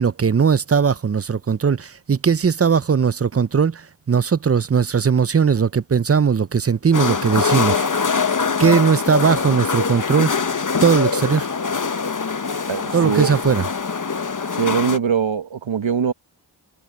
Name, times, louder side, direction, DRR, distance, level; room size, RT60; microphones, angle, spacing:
voice 1, 0.0-7.8 8.1-10.5 10.8-11.5 12.9-13.7, right 6 dB, 35° right, 0.5 m, -19 dB
sound 1, 6.9-15.0, left 5 dB, 45° left, 1.0 m, -23 dB
voice 2, 12.7-13.4 14.5-16.1, right 7 dB, 80° right, 1.3 m, -22 dB
wide cardioid pair, 50°, 45 cm